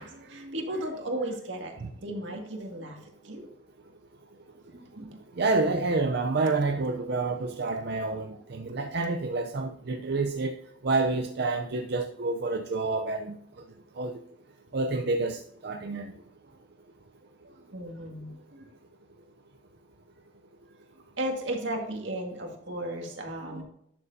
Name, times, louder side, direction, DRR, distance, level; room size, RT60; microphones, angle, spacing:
voice 1, 0.0-3.5 4.7-5.2 8.3-8.9 15.9-16.1 16.5-16.6 17.7-18.7 21.2-23.6, right 1 dB, 85° right, 1.9 m, -36 dB
voice 2, 5.4-10.5 10.8-13.3 14.0-14.2 14.7-16.1, right 3 dB, 60° right, 0.6 m, -28 dB
11.0 x 6.7 x 2.7 m
head